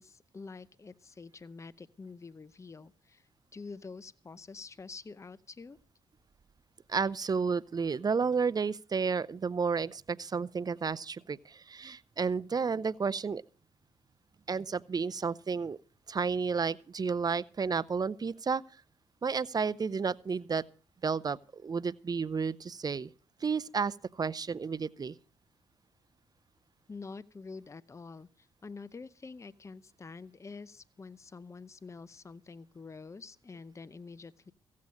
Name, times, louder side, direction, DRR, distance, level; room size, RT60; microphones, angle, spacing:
voice 1, 0.0-5.8 26.9-34.5, left 4 dB, 25° left, 0.6 m, -47 dB
voice 2, 6.9-13.4 14.5-15.8 16.1-18.6 19.2-20.6 21.0-23.1 23.4-25.1, right 5 dB, 35° right, 0.6 m, -31 dB
15.5 x 8.5 x 6.4 m
supercardioid pair, 55°, 11 cm